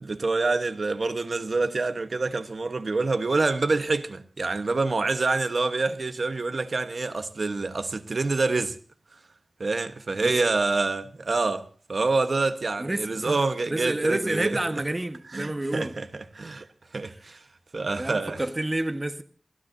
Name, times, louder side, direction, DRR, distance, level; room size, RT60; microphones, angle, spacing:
voice 1, 0.0-8.8 9.6-14.6 15.3-16.7 16.9-17.4 17.7-18.4, right 3 dB, 75° right, 1.1 m, -27 dB
voice 2, 12.8-13.4 13.7-15.9 18.0-19.2, right 1 dB, 30° right, 1.3 m, -29 dB
29.5 x 13.5 x 2.7 m
wide cardioid pair, 80°, 0 cm